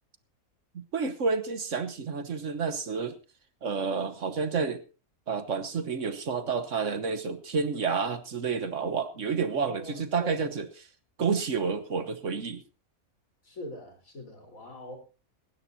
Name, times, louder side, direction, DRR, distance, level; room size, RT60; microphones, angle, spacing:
voice 1, 0.7-3.2 3.6-4.8 5.3-10.7 11.2-12.6, right 5 dB, 60° right, 11 dB, 1.4 m, -30 dB
voice 2, 9.5-10.5 13.4-15.0, left 1 dB, 65° left, 3 dB, 4.4 m, -42 dB
19.5 x 16.5 x 2.7 m, 0.33 s
omnidirectional pair, 1.5 m